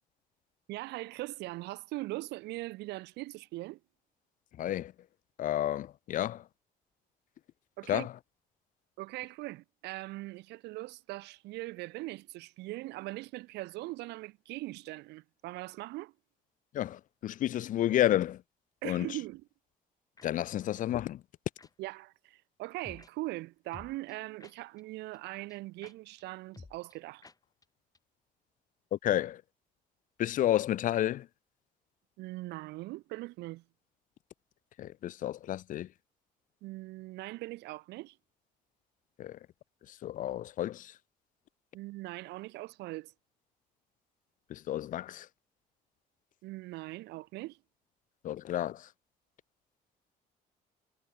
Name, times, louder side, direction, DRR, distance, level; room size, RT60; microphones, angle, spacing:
voice 1, 0.7-3.8 7.8-8.1 9.0-16.1 18.8-19.4 21.8-27.3 32.2-33.6 36.6-38.2 41.7-43.1 46.4-47.6, right 19 dB, 85° right, 1.1 m, -41 dB
voice 2, 4.6-4.9 5.4-6.4 7.9-8.1 16.7-18.4 18.8-19.1 20.2-21.2 28.9-29.4 30.2-31.3 34.8-35.9 39.2-39.4 39.9-40.9 44.5-45.3 48.2-48.9, left 12 dB, 50° left, 0.5 m, -31 dB
sound 1, 20.2-20.3 20.9-21.1 21.6-21.7 22.8-23.1 23.7-24.8 25.1-25.2 25.5-25.6 25.8-25.9 26.2-26.3 26.5-27.0 27.2-27.4 27.6-27.7 27.9-28.0, left 4 dB, 20° left, 6.5 m, -51 dB
cardioid pair, 110°, 17 cm